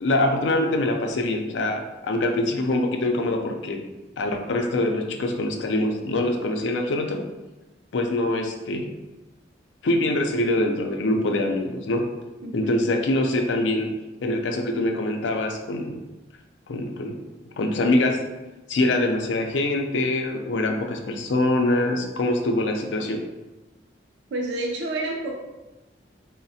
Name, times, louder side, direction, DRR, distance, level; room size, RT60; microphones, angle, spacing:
voice 1, 0.0-3.8 4.2-7.2 7.9-8.9 9.8-12.0 12.5-13.9 14.2-16.0 16.7-17.1 17.6-18.2 18.7-23.2, left 1 dB, 85° left, 3 dB, 0.4 m, -24 dB
voice 2, 12.4-12.8 24.3-25.3, right 2 dB, 80° right, 0 dB, 0.4 m, -29 dB
4.0 x 2.1 x 2.7 m, 1.1 s
head